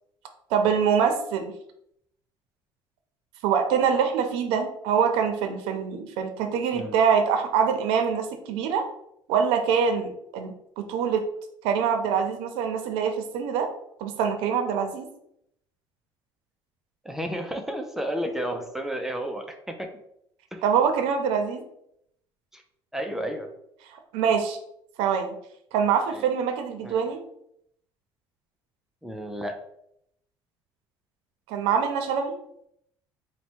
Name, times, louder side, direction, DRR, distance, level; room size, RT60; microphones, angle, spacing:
voice 1, 0.5-1.5 3.4-8.9 9.3-11.2 11.6-13.7 14.0-15.1 20.6-21.6 24.1-24.6 25.0-25.3 25.7-27.2 31.5-32.3, right 7 dB, 90° right, 6 dB, 0.6 m, -24 dB
voice 2, 17.0-19.9 20.5-20.6 22.5-22.6 22.9-23.5 26.1-26.2 26.8-27.1 29.0-29.6, equal, 5° right, 4 dB, 0.4 m, -32 dB
4.3 x 2.2 x 4.4 m, 0.74 s
cardioid pair, 160°, 9 cm